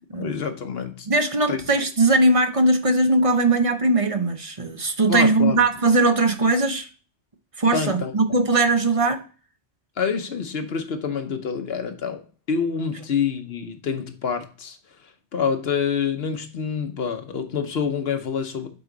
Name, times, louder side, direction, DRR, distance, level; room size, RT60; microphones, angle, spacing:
voice 1, 0.1-1.1 1.5-1.6 5.1-5.6 7.7-8.1 10.0-18.7, left 6 dB, 60° left, 1.0 m, -27 dB
voice 2, 1.1-6.9 7.6-9.2, right 2 dB, 35° right, 0.7 m, -20 dB
7.8 x 4.3 x 3.8 m
omnidirectional pair, 1.2 m